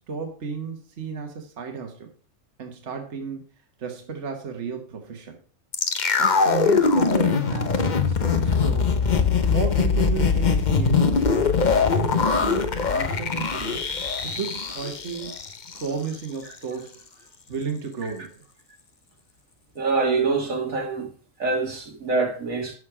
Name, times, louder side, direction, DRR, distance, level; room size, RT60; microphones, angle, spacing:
voice 1, 0.0-2.1 2.6-3.4 3.8-5.4 6.2-8.9 9.5-11.2 11.8-13.8 14.2-15.4 15.7-17.0 17.5-18.4, right 5 dB, 60° right, 1.7 m, -33 dB
sound 1, 5.7-15.9 16.1-16.2, left 5 dB, 40° left, 1.0 m, -22 dB
voice 2, 19.8-21.1 21.4-22.8, right 3 dB, 90° right, 2.6 m, -25 dB
11.0 x 6.5 x 4.9 m
omnidirectional pair, 1.4 m